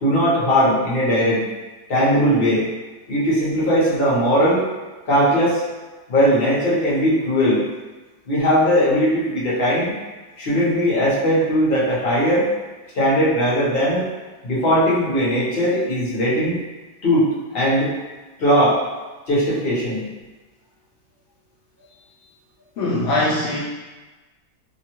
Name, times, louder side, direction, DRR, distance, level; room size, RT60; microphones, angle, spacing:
voice 1, 0.0-1.4 1.9-2.7 3.1-4.6 5.1-5.6 6.1-7.6 8.3-9.9 10.4-12.5 12.9-14.0 14.4-16.6 17.0-17.9 18.4-18.8 19.3-20.1, equal, 45° left, -7 dB, 0.8 m, -19 dB
voice 2, 22.8-23.6, left 2 dB, 85° left, -5 dB, 0.6 m, -21 dB
2.9 x 2.2 x 2.9 m, 1.2 s
omnidirectional pair, 1.8 m